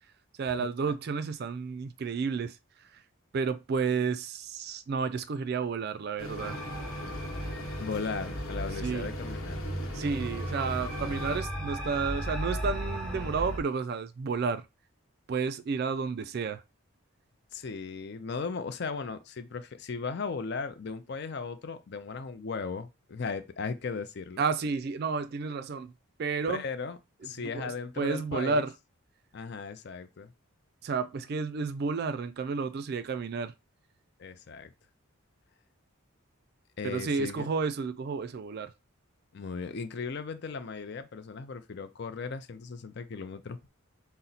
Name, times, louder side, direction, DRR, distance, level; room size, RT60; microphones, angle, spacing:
voice 1, 0.4-2.6 3.3-6.6 8.8-9.1 9.9-14.6 15.3-16.6 24.4-25.9 26.2-26.6 27.4-28.7 30.8-33.5 36.8-38.7, right 5 dB, 45° right, 0.3 m, -31 dB
sound 1, 6.2-11.4, equal, 70° left, 1.0 m, -40 dB
sound 2, 6.4-13.6, equal, 5° left, 0.7 m, -36 dB
voice 2, 7.8-9.6 17.5-24.4 26.5-28.7 29.3-30.3 34.2-34.7 36.8-37.5 39.3-43.7, left 4 dB, 50° left, 0.4 m, -37 dB
4.1 x 2.1 x 4.0 m
head